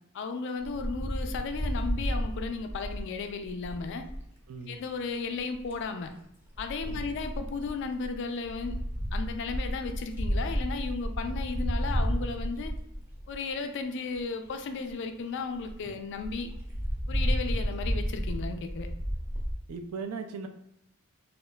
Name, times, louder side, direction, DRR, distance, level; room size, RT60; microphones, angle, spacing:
voice 1, 0.1-4.1 4.7-6.1 6.6-8.8 9.1-12.7 13.3-16.5 17.1-18.9, left 4 dB, 60° left, 7 dB, 0.3 m, -35 dB
Wind, 0.6-4.3 5.4-5.8 6.5-13.5 14.1-14.2 14.5-14.6 14.9-15.0 15.3-15.4 15.6-15.8 16.2-19.5, equal, 10° right, 0.5 m, -32 dB
voice 2, 4.5-4.8 6.8-7.1 19.7-20.5, right 5 dB, 90° right, 8 dB, 0.3 m, -38 dB
2.8 x 2.4 x 2.2 m, 0.81 s
head